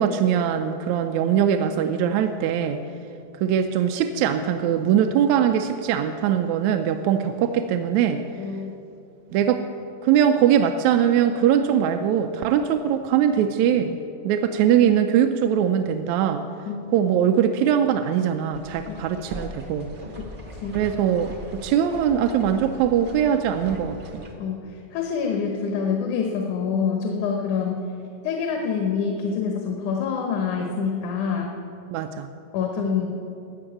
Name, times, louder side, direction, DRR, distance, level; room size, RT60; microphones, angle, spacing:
voice 1, 0.0-2.8 3.4-8.2 9.3-9.6 10.0-16.4 16.9-19.9 20.8-21.3 21.6-24.2 31.9-32.3, right 9 dB, 80° right, 6 dB, 1.8 m, -21 dB
voice 2, 8.4-8.7 16.7-16.8 18.9-19.0 20.6-20.8 24.4-27.9 28.2-31.6 32.5-33.1, left 6 dB, 90° left, 2 dB, 2.5 m, -26 dB
sound 1, 18.5-24.3, equal, 55° right, 0.5 m, -40 dB
13.5 x 7.0 x 8.8 m, 2.6 s
omnidirectional pair, 3.3 m